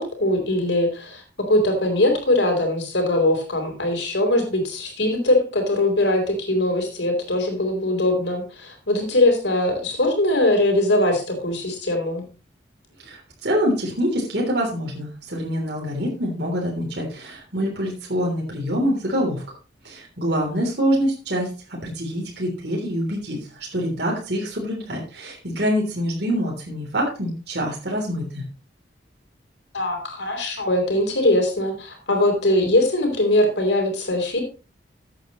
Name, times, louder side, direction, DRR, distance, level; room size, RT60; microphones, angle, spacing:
voice 1, 0.0-12.3 29.7-34.4, left 1 dB, 75° left, 3 dB, 4.0 m, -21 dB
voice 2, 13.0-19.4 19.8-21.5 21.8-28.4, equal, 60° right, -2 dB, 3.4 m, -25 dB
14.0 x 8.8 x 3.1 m, 0.33 s
head